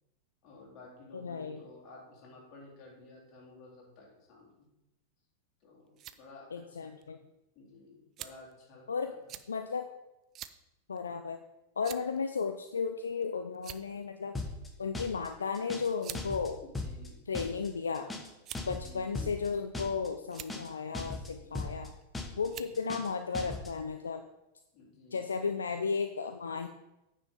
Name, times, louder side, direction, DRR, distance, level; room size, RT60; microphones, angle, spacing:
voice 1, 0.4-4.7 5.6-6.9 7.6-9.2 16.6-17.3 18.7-19.3 21.4-21.7 22.4-22.8 24.7-25.3, left 3 dB, 40° left, -2 dB, 3.5 m, -54 dB
voice 2, 1.1-1.6 6.5-7.2 8.9-9.1 9.5-9.9 10.9-11.4 11.8-14.3 14.8-16.6 17.3-18.1 18.7-21.9 22.4-24.2 25.1-26.7, left 5 dB, 70° left, 7 dB, 0.5 m, -34 dB
sound 1, 5.6-6.2 7.0-7.1 8.2-8.5 9.3-9.5 10.3-10.6 11.0-11.1 11.8-12.2 13.1-13.2 13.5-14.0 15.1-15.3 16.0-16.3 17.1-17.7 18.4-18.8 19.6-19.9 20.2-20.5 21.7-22.0 22.5-22.8, right 12 dB, 35° right, 0.5 m, -45 dB
sound 2, 14.3-14.7 14.9-15.3 15.5-16.5 16.7-17.1 17.3-17.7 17.9-18.3 18.5-18.9 19.1-19.5 19.7-20.1 20.3-20.7 20.9-21.3 21.5-21.9 22.1-22.5 22.7-23.1 23.3-23.7, left 2 dB, 10° left, 1.3 m, -38 dB
9.4 x 5.6 x 5.4 m, 0.93 s
figure-of-eight pair, 90°, 0 cm